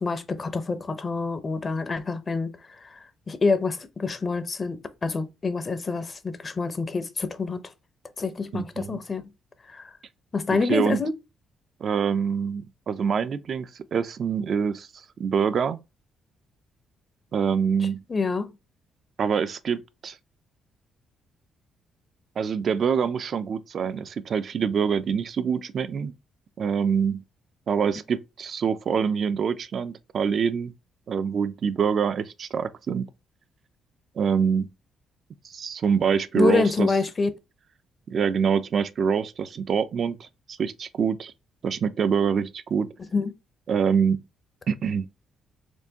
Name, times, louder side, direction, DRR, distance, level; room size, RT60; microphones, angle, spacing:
voice 1, 0.0-2.5 3.3-7.6 8.2-9.2 9.7-9.8 10.3-11.1 18.1-18.5 36.4-37.3 43.1-43.3, left 4 dB, 35° left, 0.6 m, -26 dB
voice 2, 8.5-9.0 10.5-11.0 11.8-14.9 15.2-15.8 17.3-18.0 19.2-20.2 22.4-26.1 26.6-27.2 27.7-30.7 31.1-33.1 34.2-34.7 35.4-36.9 38.1-41.3 41.6-42.9 43.7-44.2 44.7-45.1, right 6 dB, 55° right, 0.4 m, -25 dB
4.4 x 2.4 x 2.8 m
cardioid pair, 90°, 0 cm